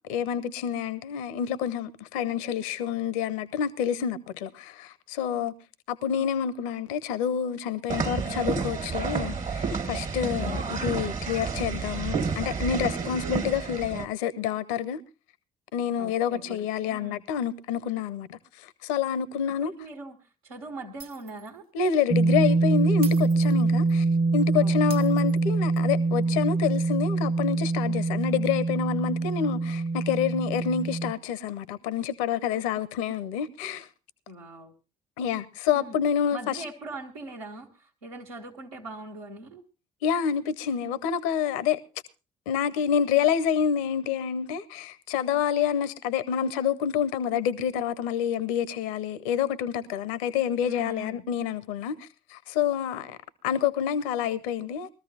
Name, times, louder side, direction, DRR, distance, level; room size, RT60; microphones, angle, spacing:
voice 1, 0.0-5.5 5.9-15.0 15.7-19.7 21.7-24.1 24.3-33.9 35.2-36.6 40.0-41.8 42.5-53.2 53.4-55.0, left 8 dB, 70° left, 0.7 m, -28 dB
sound 1, 7.9-14.1, right 5 dB, 45° right, 1.5 m, -30 dB
voice 2, 10.3-10.7 16.0-17.2 19.5-21.6 24.6-25.0 34.3-34.7 35.7-36.0 36.3-39.6 50.6-51.3, right 1 dB, 85° right, 1.5 m, -41 dB
Shatter, 21.0-21.6 21.9-22.0 23.0-24.0 24.9-25.9, right 8 dB, 60° right, 0.8 m, -45 dB
sound 2, 22.1-31.1, right 3 dB, 25° right, 0.7 m, -24 dB
21.0 x 14.0 x 2.8 m
figure-of-eight pair, 50°, 18 cm